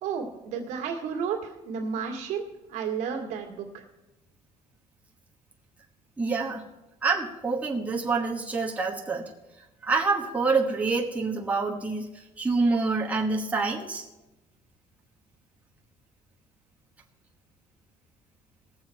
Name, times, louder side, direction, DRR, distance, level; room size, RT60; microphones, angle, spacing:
voice 1, 0.0-1.4 1.7-2.4 2.7-3.7, right 6 dB, 80° right, 2 dB, 1.9 m, -31 dB
voice 2, 6.2-6.6 7.0-9.3 9.8-12.1 12.4-14.0, right 4 dB, 10° right, -2 dB, 1.2 m, -26 dB
18.5 x 7.2 x 4.6 m, 1.0 s
cardioid pair, 145°, 12 cm